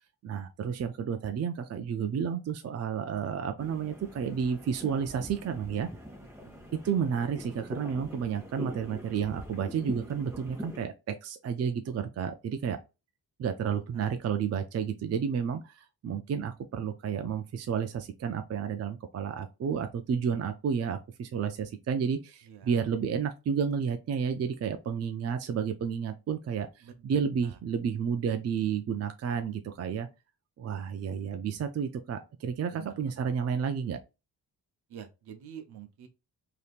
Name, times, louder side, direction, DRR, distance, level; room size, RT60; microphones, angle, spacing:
voice 1, 0.2-5.9 6.8-12.8 13.4-30.1 30.6-34.0, right 7 dB, 40° right, 0.4 m, -31 dB
sound 1, 3.6-10.9, left 1 dB, 5° right, 1.2 m, -43 dB
voice 2, 6.4-6.7 13.7-14.1 22.4-22.8 26.8-27.6 32.7-33.2 34.9-36.1, right 9 dB, 75° right, 0.7 m, -48 dB
3.3 x 2.8 x 2.4 m
cardioid pair, 110°, 39 cm